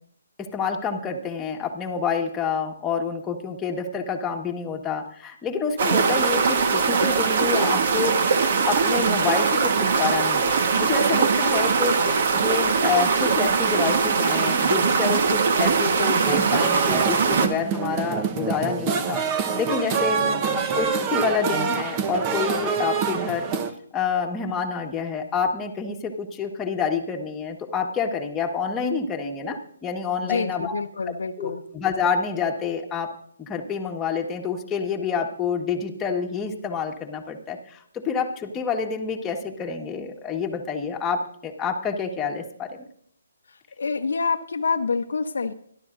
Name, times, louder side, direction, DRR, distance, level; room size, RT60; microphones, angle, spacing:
voice 1, 0.4-23.4 23.9-30.7 31.4-33.1 33.4-42.9, left 6 dB, 15° left, 1 dB, 1.5 m, -28 dB
sound 1, 5.8-17.5, right 5 dB, 50° right, 1.4 m, -21 dB
sound 2, 16.2-23.7, right 6 dB, 25° right, 1.1 m, -26 dB
voice 2, 20.2-20.7 30.2-31.6 43.8-45.5, left 4 dB, 70° left, 7 dB, 0.9 m, -27 dB
26.0 x 11.5 x 2.6 m, 0.66 s
figure-of-eight pair, 145°, 0 cm